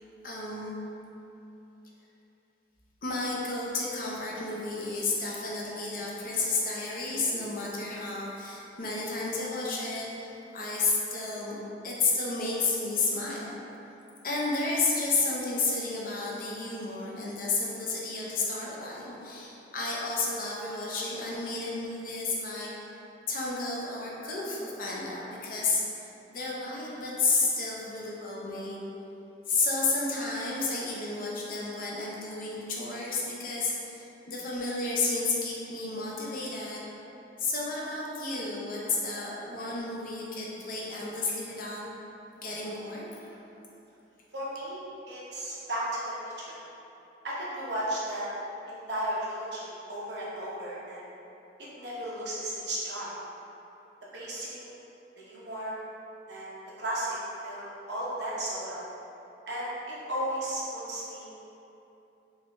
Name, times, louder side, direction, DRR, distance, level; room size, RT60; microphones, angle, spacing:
voice 1, 0.2-0.8 3.0-11.5 11.8-13.6 14.2-22.7 23.3-28.8 29.5-36.8 37.4-41.8 42.4-43.3, left 3 dB, 50° left, -4 dB, 0.6 m, -31 dB
voice 2, 44.3-44.8 45.1-46.6 47.2-48.3 48.7-51.1 51.8-53.1 54.1-54.7 55.2-55.8 56.3-57.2 57.4-58.8 59.5-61.3, right 1 dB, 70° right, -7 dB, 0.8 m, -34 dB
3.6 x 2.5 x 3.1 m, 3.0 s
head